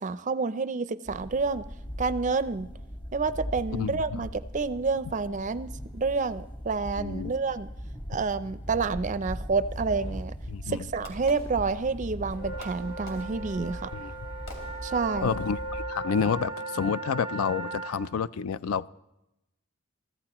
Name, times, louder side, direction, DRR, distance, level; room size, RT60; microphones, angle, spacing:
voice 1, 0.0-1.7 2.0-2.7 3.1-7.7 8.1-10.3 10.7-13.9 14.8-15.3, right 4 dB, 35° right, 14 dB, 0.4 m, -29 dB
sound 1, 1.1-15.8, equal, 20° left, 1.2 m, -40 dB
voice 2, 3.8-4.2 7.0-7.3 10.5-10.9 13.9-14.1 15.2-18.9, left 6 dB, 80° left, 17 dB, 0.4 m, -29 dB
Fireworks, 9.9-12.2 12.6-15.3, left 2 dB, 65° left, 3.1 m, -49 dB
sound 2, 12.3-18.0, right 2 dB, 45° left, 1.4 m, -37 dB
23.0 x 14.0 x 3.0 m, 0.90 s
head